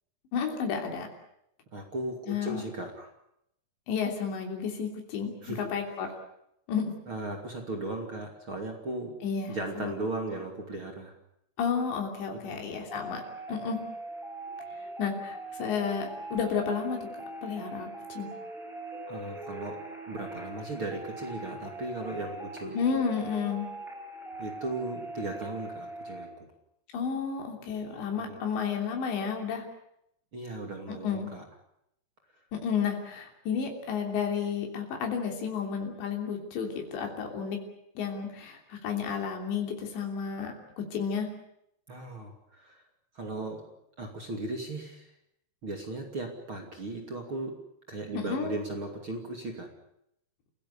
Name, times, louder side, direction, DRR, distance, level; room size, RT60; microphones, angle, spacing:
voice 1, 0.3-1.1 2.3-2.6 3.9-5.3 5.7-6.1 6.7-6.9 9.2-9.9 11.6-13.2 13.5-13.8 15.0-17.0 17.4-18.3 22.7-23.7 26.9-29.6 30.9-31.3 32.5-37.6 38.0-41.3 48.2-48.6, left 6 dB, 85° left, 2 dB, 5.4 m, -31 dB
voice 2, 1.7-3.1 5.4-5.7 7.1-9.2 9.5-11.1 12.3-12.7 19.1-23.0 24.4-26.5 28.2-28.4 30.3-31.5 41.9-42.8 43.1-43.6 44.0-45.1 45.6-47.6 47.9-49.7, right 2 dB, 35° right, 3 dB, 2.9 m, -37 dB
sound 1, 12.9-26.3, right 1 dB, ahead, 6.6 m, -41 dB
30.0 x 16.5 x 8.3 m, 0.78 s
omnidirectional pair, 4.9 m